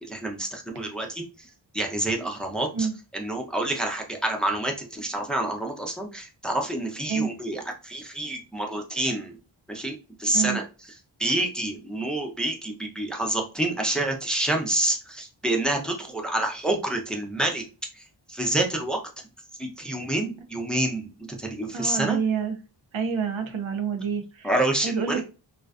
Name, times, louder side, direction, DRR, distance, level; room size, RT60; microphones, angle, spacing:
voice 1, 0.0-1.5 1.7-2.9 3.1-9.3 9.7-10.6 11.2-17.6 17.9-19.0 19.6-22.2 24.4-25.2, right 1 dB, ahead, 2 dB, 0.5 m, -28 dB
voice 2, 21.7-22.5 22.9-24.5 24.8-25.2, right 6 dB, 85° right, 6 dB, 0.6 m, -28 dB
2.5 x 2.1 x 2.3 m, 0.32 s
wide cardioid pair, 60°, 47 cm